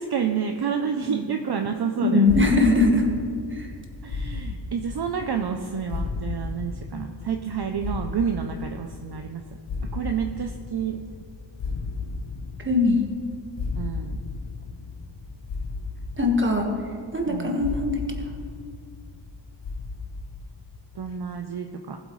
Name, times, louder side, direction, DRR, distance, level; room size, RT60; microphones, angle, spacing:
voice 1, 0.0-2.5 4.0-9.4 9.9-11.0 13.7-14.2 17.3-17.7 21.0-22.0, right 7 dB, 55° right, 5 dB, 0.6 m, -29 dB
voice 2, 2.1-3.1 3.5-3.7 12.6-13.0 16.2-16.7 17.1-18.0, left 2 dB, 25° right, 1 dB, 1.5 m, -21 dB
sound 1, 2.3-21.2, left 4 dB, 65° left, 0.9 m, -35 dB
18.5 x 8.0 x 3.1 m, 2.3 s
wide cardioid pair, 115°, 46 cm